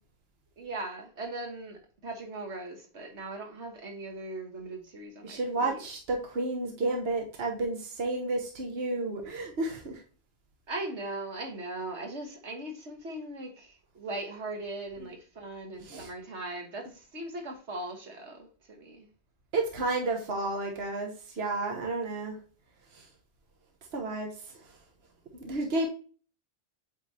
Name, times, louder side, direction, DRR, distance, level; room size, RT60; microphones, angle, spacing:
voice 1, 0.6-5.8 10.7-19.1, right 2 dB, 85° right, 1.7 m, -39 dB
voice 2, 5.2-9.9 15.9-16.1 19.5-21.1 21.4-22.3 23.9-24.3 25.4-25.9, right 2 dB, 65° right, 1.4 m, -31 dB
8.1 x 4.6 x 2.7 m
omnidirectional pair, 1.1 m